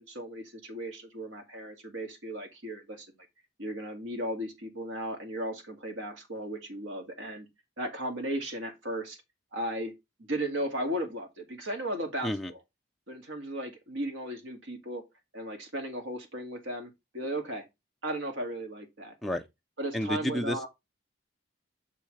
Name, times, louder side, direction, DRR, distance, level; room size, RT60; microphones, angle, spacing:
voice 1, 0.0-3.1 3.6-7.5 7.8-9.2 9.5-9.9 10.2-12.6 13.1-15.0 15.3-17.6 18.0-19.2 19.8-20.7, right 1 dB, 80° right, 2.1 m, -36 dB
voice 2, 19.9-20.7, left 1 dB, ahead, 0.5 m, -30 dB
6.6 x 5.8 x 3.3 m
head